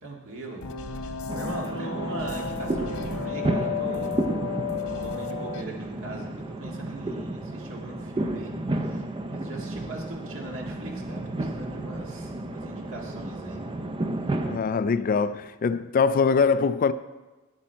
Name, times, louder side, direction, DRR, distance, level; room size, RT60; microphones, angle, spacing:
voice 1, 0.0-4.2 5.0-13.6, right 2 dB, 65° right, 1.9 m, -40 dB
sound 1, 0.6-5.6, left 5 dB, 70° left, 0.7 m, -33 dB
sound 2, 1.3-14.6, right 2 dB, 20° right, 0.5 m, -32 dB
voice 2, 14.5-16.9, left 5 dB, 40° left, 0.3 m, -23 dB
10.5 x 8.8 x 4.4 m
head